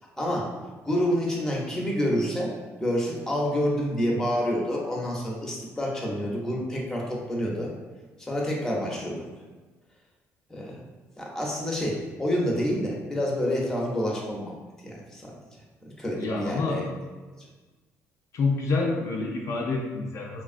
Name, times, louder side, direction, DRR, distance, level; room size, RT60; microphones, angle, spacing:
voice 1, 0.2-0.5 0.8-2.5 2.8-7.7 8.2-9.3 10.5-10.8 11.2-14.5 14.8-15.4 15.8-16.9, equal, 10° left, -2 dB, 0.7 m, -28 dB
voice 2, 16.1-16.8 18.3-20.4, left 3 dB, 60° left, -1 dB, 0.4 m, -27 dB
3.0 x 2.3 x 2.5 m, 1.3 s
cardioid pair, 100°, 6 cm